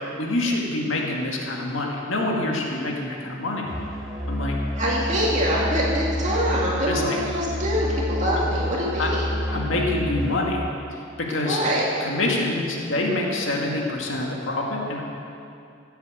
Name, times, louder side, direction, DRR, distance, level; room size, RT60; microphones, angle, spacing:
voice 1, 0.2-3.7 4.3-4.6 6.9-7.2 9.0-9.1 9.5-10.6 11.2-11.6 12.0-15.0, left 2 dB, 75° left, -1 dB, 1.9 m, -26 dB
Musical instrument, 3.6-10.6, left 1 dB, ahead, 2.1 m, -29 dB
voice 2, 4.8-9.3 11.4-11.8, equal, 35° right, -5 dB, 2.4 m, -24 dB
15.5 x 8.1 x 7.9 m, 2.6 s
head